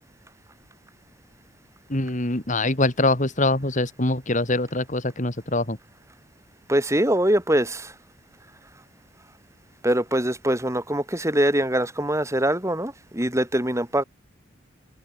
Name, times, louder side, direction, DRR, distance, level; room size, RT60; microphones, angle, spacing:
voice 1, 1.9-5.8, left 2 dB, 40° left, 2.7 m, -24 dB
voice 2, 6.7-7.9 9.8-14.0, right 1 dB, 15° right, 5.8 m, -23 dB
head